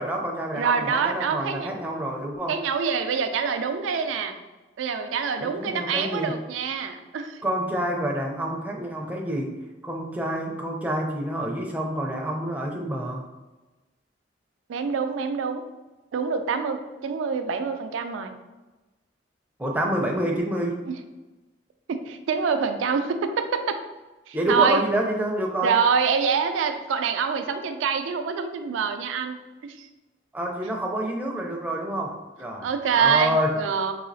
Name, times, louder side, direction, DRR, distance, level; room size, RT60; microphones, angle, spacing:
voice 1, 0.0-2.6 5.4-6.3 7.4-9.5 9.8-13.2 19.6-20.8 24.3-25.8 30.3-33.6, right 1 dB, 10° right, -1 dB, 0.4 m, -28 dB
voice 2, 0.5-1.7 2.5-4.3 4.8-7.4 14.7-15.6 16.1-18.4 21.9-23.8 24.3-24.8 25.6-29.9 32.6-33.9, right 6 dB, 85° right, 7 dB, 0.3 m, -25 dB
4.0 x 2.7 x 2.6 m, 1.1 s
head